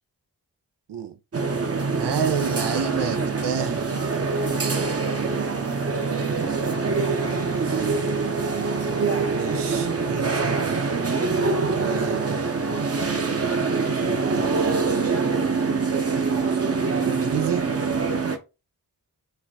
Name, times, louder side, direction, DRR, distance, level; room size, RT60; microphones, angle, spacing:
sound 1, 1.3-18.4, right 4 dB, 35° right, 0.7 m, -24 dB
voice 1, 2.0-3.9 5.9-8.1 9.3-12.4 13.0-14.9 17.1-17.7, right 7 dB, 90° right, 0.6 m, -32 dB
4.2 x 2.2 x 2.7 m
cardioid pair, 45°, 40 cm